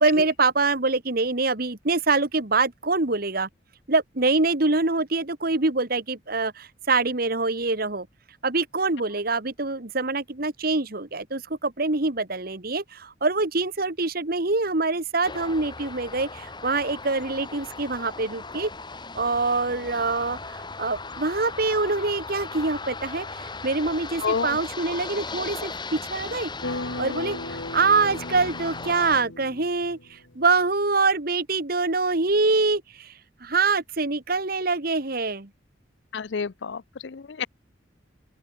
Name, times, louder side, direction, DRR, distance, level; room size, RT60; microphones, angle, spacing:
voice 1, 0.0-3.5 3.9-8.1 8.4-18.7 19.1-26.5 27.0-33.1 33.4-35.5, right 3 dB, 50° right, 1.7 m, -25 dB
sound 1, 15.2-29.2, left 3 dB, 25° left, 3.4 m, -37 dB
voice 2, 24.2-24.5 36.1-37.5, left 5 dB, 65° left, 0.5 m, -29 dB
sound 2, 26.6-30.3, left 2 dB, 80° left, 3.4 m, -36 dB
open air
head